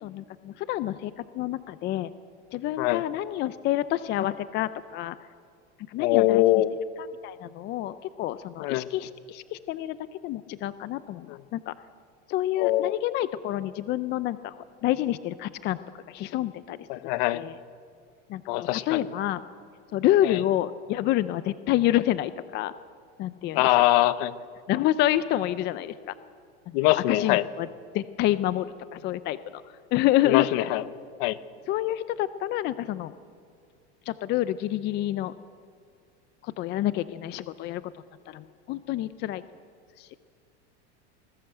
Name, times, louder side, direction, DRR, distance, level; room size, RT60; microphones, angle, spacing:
voice 1, 0.0-2.1 2.5-5.2 5.9-6.6 7.0-10.0 10.2-11.7 12.3-15.8 16.1-17.6 18.3-19.4 19.9-22.7 23.2-23.8 24.7-26.1 26.7-27.7 27.9-30.8 31.7-33.1 34.1-35.3 36.4-39.4 40.0-40.1, left 13 dB, 30° left, 14 dB, 0.5 m, -28 dB
voice 2, 6.0-6.7 8.6-8.9 12.6-13.0 16.9-17.4 18.5-19.0 23.5-24.3 26.7-27.4 30.2-30.8 31.2-31.4, left 17 dB, 55° left, 15 dB, 1.1 m, -22 dB
27.5 x 20.0 x 7.8 m, 2.2 s
supercardioid pair, 150°, 35 cm